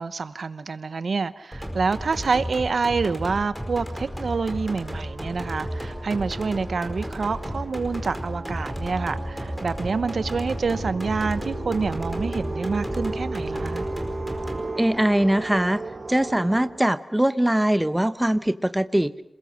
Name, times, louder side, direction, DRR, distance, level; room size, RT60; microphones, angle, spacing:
voice 1, 0.0-13.8, right 4 dB, 75° right, 15 dB, 0.8 m, -27 dB
sound 1, 1.5-14.6, equal, 5° left, 4.8 m, -33 dB
sound 2, 4.1-16.7, right 2 dB, 50° right, 5.3 m, -35 dB
voice 2, 14.7-15.8 16.1-19.1, right 1 dB, 10° right, 13 dB, 0.9 m, -22 dB
28.0 x 21.0 x 6.4 m, 0.75 s
wide cardioid pair, 100°, 0 cm